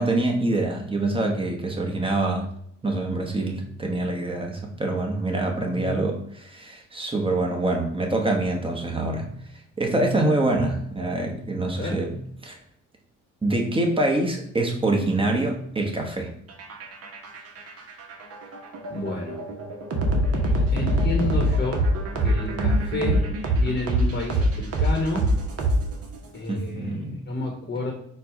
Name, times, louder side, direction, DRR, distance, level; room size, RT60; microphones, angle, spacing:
voice 1, 0.0-2.5 2.8-9.3 9.8-12.1 12.4-12.6 13.4-16.3 26.5-27.2, right 2 dB, 15° right, 1 dB, 1.0 m, -25 dB
sound 1, 16.5-26.2, equal, 50° right, 1.0 m, -24 dB
voice 2, 18.9-19.4 20.7-21.9 22.2-25.3 26.3-27.9, left 2 dB, 35° left, 0 dB, 1.0 m, -30 dB
4.5 x 2.3 x 4.8 m, 0.70 s
cardioid pair, 90°, 30 cm